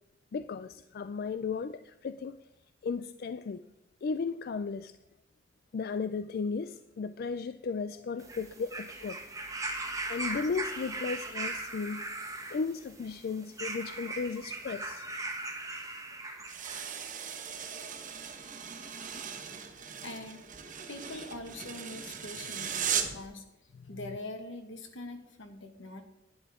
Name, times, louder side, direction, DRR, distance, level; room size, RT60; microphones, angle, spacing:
voice 1, 0.3-2.4 2.8-3.6 4.0-4.9 5.7-9.2 10.1-12.1 12.5-15.0, left 5 dB, 50° left, 12 dB, 0.3 m, -35 dB
sound 1, 8.2-16.9 17.8-17.9, right 2 dB, 15° right, 1.3 m, -39 dB
sound 2, 16.5-23.3, right 7 dB, 45° right, 1.2 m, -38 dB
voice 2, 20.0-20.4 20.9-23.4 23.9-26.0, left 2 dB, 80° left, 6 dB, 1.6 m, -43 dB
11.5 x 10.5 x 3.6 m, 0.91 s
head